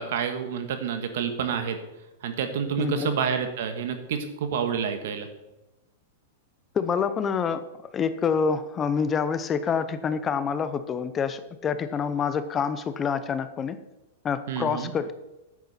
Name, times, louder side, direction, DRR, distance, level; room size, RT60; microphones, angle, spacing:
voice 1, 0.0-1.8 2.2-5.3 14.5-14.9, right 7 dB, 70° right, 8 dB, 1.5 m, -28 dB
voice 2, 2.8-3.1 6.7-7.6 7.9-13.8 14.2-15.1, left 6 dB, 20° left, 12 dB, 0.6 m, -27 dB
10.0 x 8.6 x 4.3 m, 0.99 s
hypercardioid pair, 140°, 0 cm